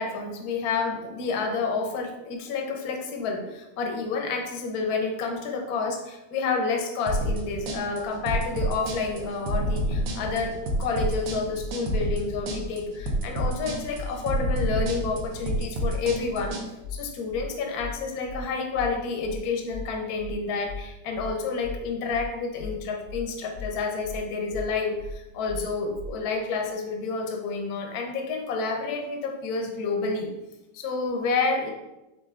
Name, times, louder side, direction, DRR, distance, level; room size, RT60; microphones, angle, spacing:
voice 1, 0.0-16.6 16.9-30.3 30.7-31.7, left 4 dB, 65° left, 3 dB, 1.0 m, -29 dB
sound 1, 7.1-16.7, equal, 75° right, 1.5 m, -28 dB
sound 2, 11.1-11.2 11.5-11.7 12.0-12.2 12.5-12.7 13.0-13.1 13.5-13.6 13.9-14.1 14.4-14.6 14.9-15.1 15.4-15.5 15.9-16.0 16.3-16.5 16.8-17.0 17.3-17.5 17.8-17.9 18.3-18.4 18.7-18.9 19.2-19.4 19.7-19.9 20.2-20.3 20.7-20.8 21.1-21.3 21.6-21.8 22.1-22.3 22.6-22.7 23.1-23.2 23.5-23.7 24.0-24.2 24.5-24.7 25.0-25.1 25.5-25.6 25.9-26.1, left 4 dB, 80° left, 1.4 m, -37 dB
5.4 x 3.7 x 2.4 m, 0.98 s
omnidirectional pair, 2.2 m